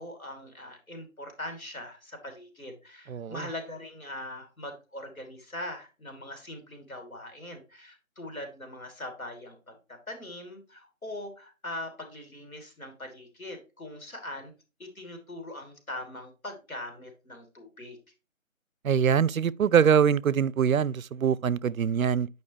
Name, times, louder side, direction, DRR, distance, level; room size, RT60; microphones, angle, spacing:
voice 1, 0.0-14.5 14.8-18.0, left 1 dB, 90° left, 3.0 m, -41 dB
voice 2, 3.1-3.5 18.8-22.3, right 7 dB, 80° right, 0.5 m, -23 dB
9.1 x 5.3 x 3.1 m
figure-of-eight pair, 155°, 41 cm